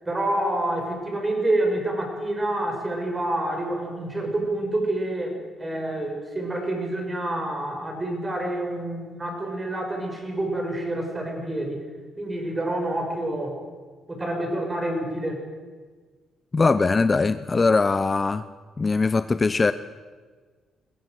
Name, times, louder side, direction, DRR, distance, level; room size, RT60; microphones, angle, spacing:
voice 1, 0.1-11.8 12.2-13.6 14.1-15.4, right 1 dB, 20° right, 3 dB, 5.9 m, -27 dB
voice 2, 16.5-18.4 18.8-19.7, left 4 dB, 30° left, 13 dB, 0.7 m, -21 dB
21.0 x 16.0 x 7.9 m, 1.5 s
cardioid pair, 90°, 0 cm